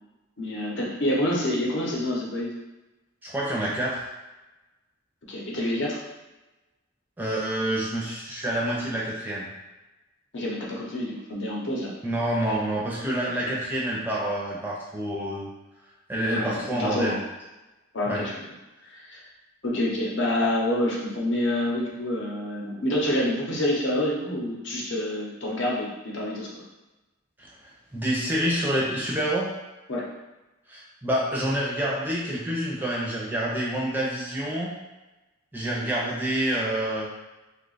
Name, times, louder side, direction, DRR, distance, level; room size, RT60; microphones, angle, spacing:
voice 1, 0.4-2.5 5.3-6.0 10.3-11.9 16.3-17.2 17.9-18.3 18.9-19.2 19.6-26.5 29.9-30.1, left 1 dB, 60° left, -3 dB, 0.8 m, -27 dB
voice 2, 3.2-4.0 7.2-9.5 12.0-15.5 16.1-17.2 18.1-18.2 27.9-29.5 30.7-34.7 35.5-37.1, right 1 dB, 10° right, -5 dB, 0.5 m, -27 dB
2.9 x 2.4 x 3.9 m, 1.1 s
head